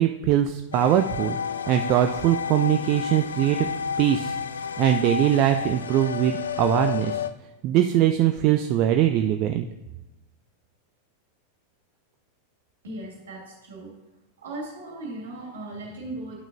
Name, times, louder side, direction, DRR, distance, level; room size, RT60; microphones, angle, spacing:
voice 1, 0.0-1.4 1.7-3.7 4.0-4.3 4.8-7.1 7.6-9.7, right 11 dB, 40° right, 7 dB, 0.3 m, -21 dB
sound 1, 0.7-7.3, left 7 dB, 70° left, 0.3 m, -31 dB
voice 2, 12.8-13.9 14.4-16.3, right 2 dB, 65° right, -2 dB, 2.4 m, -37 dB
11.0 x 5.9 x 2.7 m, 1.1 s
figure-of-eight pair, 90°, 0 cm